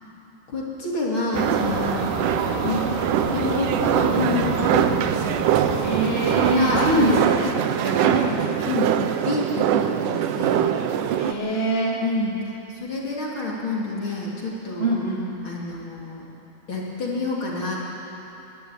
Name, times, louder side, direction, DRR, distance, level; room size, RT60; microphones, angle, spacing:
voice 1, 0.5-2.1 2.6-2.8 3.3-4.9 6.5-6.8 8.0-9.0 9.2-10.7 12.0-14.9 15.4-16.2 16.7-17.8, left 3 dB, 35° left, -4 dB, 2.9 m, -28 dB
sound 1, 1.3-7.2, right 4 dB, 65° right, 3.0 m, -28 dB
sound 2, 1.3-11.3, right 10 dB, 85° right, 1.8 m, -23 dB
voice 2, 5.8-7.5 7.8-8.3 11.2-12.0 14.8-15.2, right 1 dB, 25° right, -4 dB, 1.5 m, -23 dB
21.0 x 13.5 x 9.7 m, 2.9 s
omnidirectional pair, 4.5 m